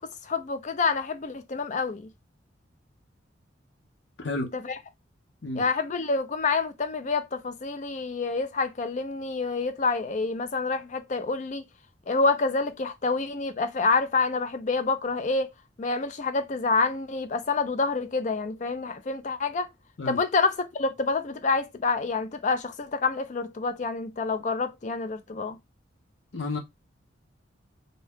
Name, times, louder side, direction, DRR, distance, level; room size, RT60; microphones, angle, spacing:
voice 1, 0.2-2.1 4.6-4.7 5.6-11.6 12.1-15.5 15.8-19.7 20.1-25.6, left 4 dB, 40° left, 0.4 m, -27 dB
voice 2, 4.2-4.5 5.4-5.6 20.0-20.2 26.3-26.6, left 2 dB, 70° left, 0.8 m, -31 dB
2.7 x 2.2 x 3.4 m
head